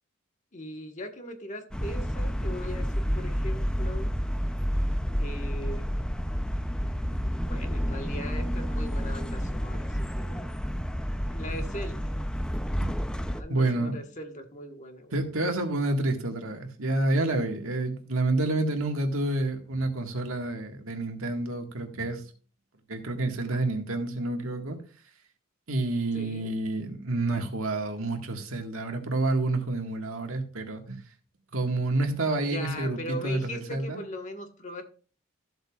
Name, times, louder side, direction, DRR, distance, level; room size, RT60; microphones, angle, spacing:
voice 1, 0.5-4.2 5.2-5.8 7.4-10.5 11.2-12.1 13.3-15.1 26.1-26.5 32.4-34.8, left 1 dB, 35° left, 4 dB, 1.4 m, -40 dB
sound 1, 1.7-13.4, equal, 5° left, 0.5 m, -30 dB
voice 2, 13.5-14.0 15.1-22.2 22.9-24.8 25.7-31.0 31.5-34.0, right 2 dB, 85° right, 4 dB, 1.7 m, -29 dB
13.5 x 7.8 x 2.4 m, 0.39 s
head